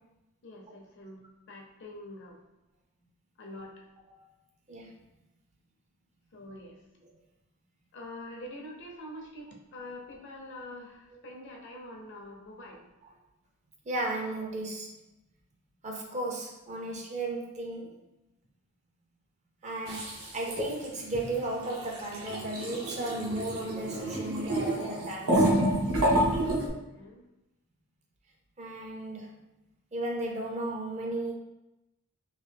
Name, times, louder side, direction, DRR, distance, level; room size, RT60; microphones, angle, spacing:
voice 1, 0.4-1.2 1.5-2.4 3.4-3.8 6.3-6.7 7.9-12.8 26.7-27.2, left 1 dB, 55° left, 0 dB, 0.6 m, -45 dB
voice 2, 13.9-14.9 15.8-17.9 19.6-25.5 28.6-29.3 29.9-31.3, right 2 dB, 30° right, 0 dB, 0.5 m, -35 dB
sound 1, 19.9-20.9 21.1-21.4 21.6-26.7, right 1 dB, 75° right, 0.8 m, -28 dB
3.1 x 2.5 x 3.3 m, 0.95 s
head